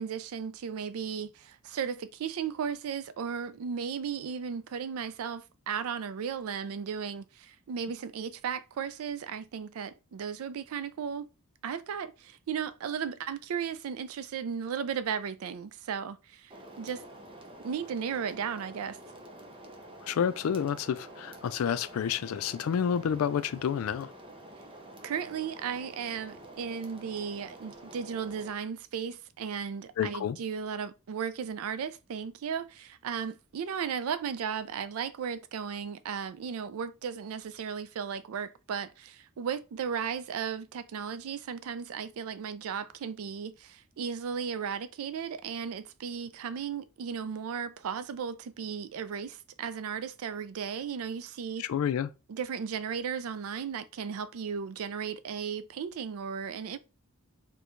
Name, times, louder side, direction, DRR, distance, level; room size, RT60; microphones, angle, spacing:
voice 1, 0.0-11.3 11.6-17.0 17.6-19.0 25.0-51.6 52.3-56.8, right 7 dB, 90° right, 0.4 m, -35 dB
sound 1, 16.5-28.5, right 1 dB, 25° right, 0.5 m, -48 dB
voice 2, 20.1-24.1 30.0-30.4 51.6-52.1, left 8 dB, 80° left, 0.3 m, -29 dB
4.4 x 2.2 x 2.5 m
head